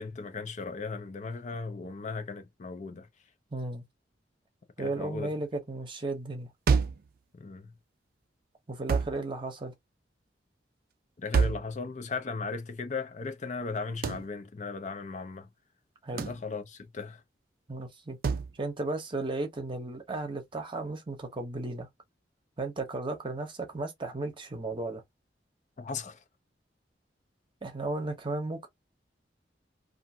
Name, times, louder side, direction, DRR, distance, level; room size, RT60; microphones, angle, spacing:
voice 1, 0.0-3.1 4.8-5.3 7.3-7.7 11.2-15.5 16.1-17.2 25.8-26.2, left 4 dB, 40° left, 0.5 m, -37 dB
voice 2, 3.5-3.8 4.8-6.5 8.7-9.7 16.0-16.2 17.7-18.2 18.6-21.9 22.6-25.0 27.6-28.7, right 2 dB, 30° right, 0.8 m, -34 dB
sound 1, 6.7-7.1 8.9-9.2 11.3-11.7 14.0-14.3 16.2-16.4 18.2-18.5, right 5 dB, 55° right, 0.4 m, -26 dB
2.6 x 2.5 x 2.6 m
head